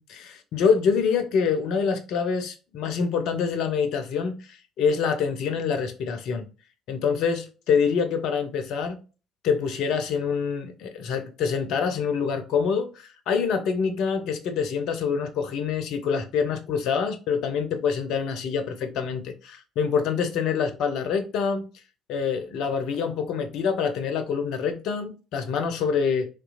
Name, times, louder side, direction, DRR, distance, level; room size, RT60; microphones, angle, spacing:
voice 1, 0.0-6.5 6.9-9.0 9.4-21.6 22.1-26.3, left 6 dB, 55° left, 0.4 m, -26 dB
2.7 x 2.2 x 2.4 m
figure-of-eight pair, 50°, 0 cm